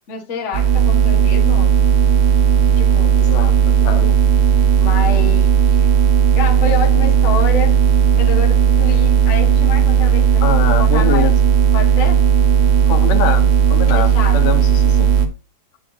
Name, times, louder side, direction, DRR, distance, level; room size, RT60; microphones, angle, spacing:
voice 1, 0.1-1.8 2.8-3.2 4.8-5.9 6.3-7.7 8.2-11.3 11.7-12.2 13.9-14.5, left 5 dB, 35° left, 1.1 m, -27 dB
sound 1, 0.5-15.3, right 8 dB, 75° right, 1.2 m, -14 dB
voice 2, 3.2-4.1 5.8-5.9 10.4-11.3 12.9-15.1, left 10 dB, 80° left, 2.5 m, -24 dB
10.5 x 5.7 x 2.8 m
omnidirectional pair, 3.7 m